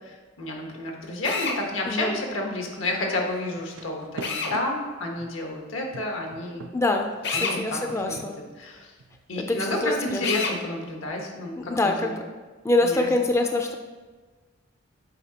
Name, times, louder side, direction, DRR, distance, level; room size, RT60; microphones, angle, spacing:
voice 1, 0.4-6.6 7.3-8.9 9.3-12.2 12.8-13.1, left 2 dB, 85° left, 1 dB, 1.2 m, -30 dB
Drill, 1.2-1.6 4.2-4.6 7.2-7.6 10.2-10.6, left 4 dB, 60° left, 0.7 m, -28 dB
voice 2, 1.9-2.2 6.7-8.4 9.4-10.2 11.6-12.2 12.6-13.7, left 2 dB, 15° left, 4 dB, 0.4 m, -25 dB
sound 1, 3.5-5.4 5.9-9.2, right 4 dB, 70° right, 0.4 m, -43 dB
8.1 x 4.8 x 2.8 m, 1.3 s
head